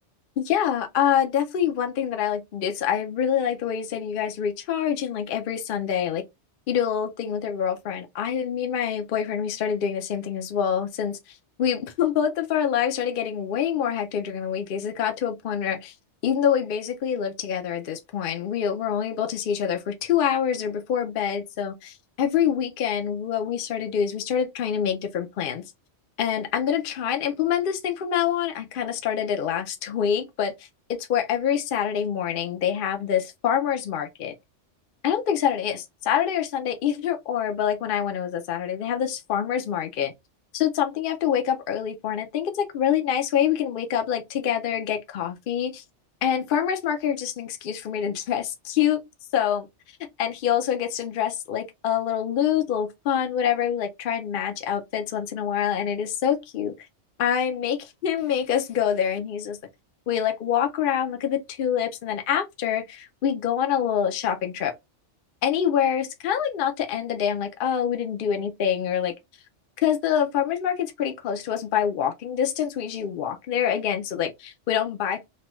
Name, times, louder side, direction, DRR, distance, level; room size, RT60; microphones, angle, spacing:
voice 1, 0.4-6.2 6.7-15.9 16.2-25.6 26.2-30.5 30.9-34.3 35.0-40.1 40.5-45.8 46.2-49.0 49.3-49.7 50.2-56.9 57.2-59.6 60.1-64.7 65.4-69.1 69.8-75.2, left 9 dB, 60° left, 0.6 m, -26 dB
3.0 x 2.2 x 2.9 m
omnidirectional pair, 1.2 m